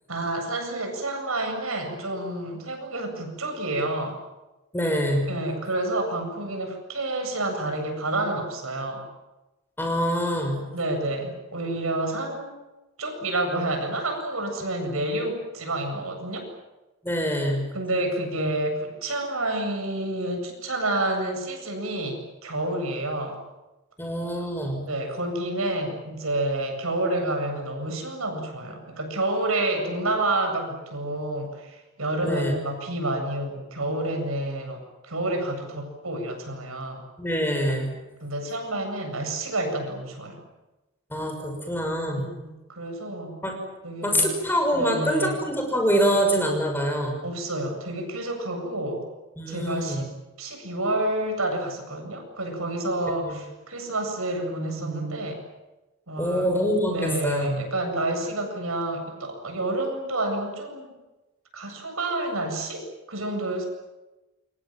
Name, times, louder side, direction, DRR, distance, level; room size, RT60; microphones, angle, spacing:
voice 1, 0.1-4.2 5.3-9.1 10.7-12.6 13.0-16.5 17.7-23.4 24.8-37.1 38.2-40.4 42.2-43.3 43.8-44.3 44.7-45.4 47.2-49.1 49.5-50.1 50.4-55.4 56.1-56.5 56.9-60.9 61.5-63.7, right 2 dB, 85° right, 4 dB, 7.9 m, -29 dB
voice 2, 4.7-5.3 9.8-10.6 14.9-15.0 17.0-17.7 24.0-24.9 32.2-32.5 37.2-37.9 41.1-42.3 43.4-43.6 44.0-47.2 49.4-50.0 53.2-53.3 56.2-57.7, equal, 10° left, 3 dB, 6.2 m, -25 dB
29.0 x 25.0 x 7.6 m, 1.0 s
head